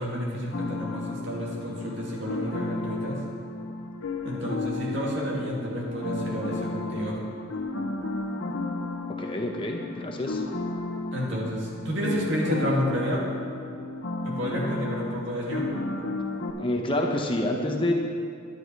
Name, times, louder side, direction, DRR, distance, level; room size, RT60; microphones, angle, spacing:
voice 1, 0.0-3.2 4.2-7.2 11.1-13.2 14.2-15.7, equal, 60° right, -4 dB, 2.5 m, -30 dB
sound 1, 0.5-16.5, left 2 dB, 65° left, 0.9 m, -33 dB
voice 2, 9.2-10.4 16.6-17.9, left 1 dB, 25° left, 2 dB, 0.8 m, -27 dB
10.5 x 10.5 x 4.7 m, 2.2 s
head